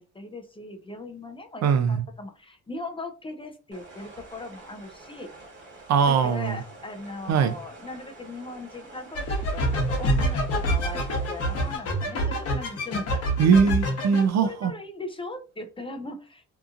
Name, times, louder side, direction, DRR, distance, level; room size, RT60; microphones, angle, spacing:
voice 1, 0.0-5.3 6.0-13.3 14.4-16.4, left 2 dB, 20° left, 0.4 m, -39 dB
voice 2, 1.6-2.0 5.9-6.6 7.3-7.5 13.4-14.7, right 6 dB, 60° right, 0.5 m, -21 dB
sound 1, 3.7-11.8, right 2 dB, 40° right, 1.4 m, -47 dB
sound 2, 9.1-14.2, equal, 55° left, 1.0 m, -26 dB
2.8 x 2.4 x 2.4 m
cardioid pair, 90°, 30 cm